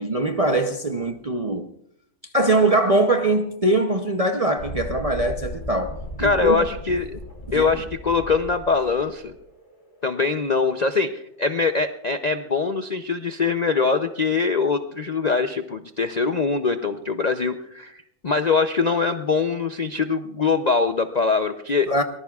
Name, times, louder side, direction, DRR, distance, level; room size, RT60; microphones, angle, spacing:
voice 1, 0.0-1.7 2.3-6.7 7.5-7.8 21.9-22.0, right 2 dB, 40° right, 0.5 m, -22 dB
Thunderstorm, 4.6-12.0, left 1 dB, 35° left, 2.3 m, -37 dB
voice 2, 6.2-7.2 7.5-9.3 10.0-21.9, left 4 dB, 50° left, 0.5 m, -23 dB
23.5 x 19.5 x 2.4 m
omnidirectional pair, 1.5 m